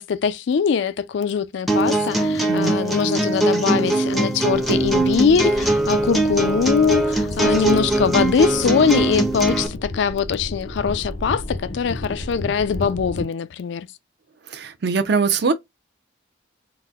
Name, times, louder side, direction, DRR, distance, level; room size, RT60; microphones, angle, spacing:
voice 1, 0.0-13.9, left 6 dB, 65° left, 0.3 m, -22 dB
sound 1, 1.7-9.7, right 2 dB, ahead, 0.5 m, -21 dB
sound 2, 4.6-13.2, left 1 dB, 90° left, 0.7 m, -33 dB
voice 2, 14.5-15.5, right 4 dB, 55° right, 0.5 m, -21 dB
3.9 x 2.1 x 2.2 m
head